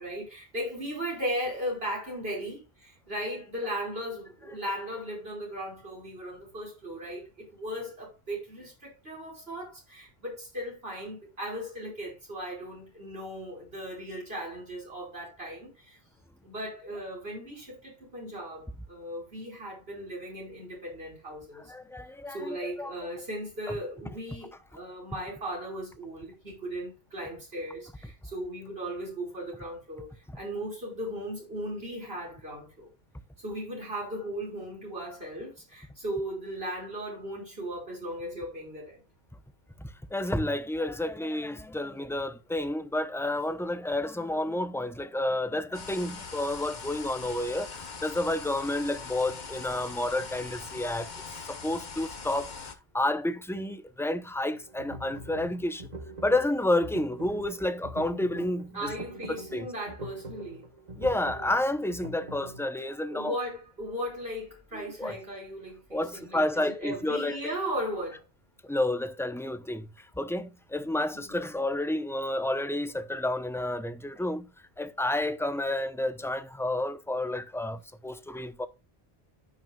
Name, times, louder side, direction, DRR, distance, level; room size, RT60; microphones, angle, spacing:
voice 1, 0.0-16.0 16.4-21.7 22.3-32.9 33.4-39.0 58.7-60.7 63.1-68.2 71.1-71.4, equal, 70° right, 5.3 m, -37 dB
voice 2, 21.7-22.9 39.8-55.9 56.2-58.9 59.5-59.7 61.0-63.4 64.7-65.1 65.9-67.5 68.6-74.5 74.8-78.7, left 1 dB, 5° left, 0.5 m, -30 dB
sound 1, 45.7-52.7, left 5 dB, 50° left, 1.1 m, -42 dB
sound 2, 54.5-62.6, right 2 dB, 40° right, 1.5 m, -43 dB
13.5 x 6.0 x 2.3 m
omnidirectional pair, 1.1 m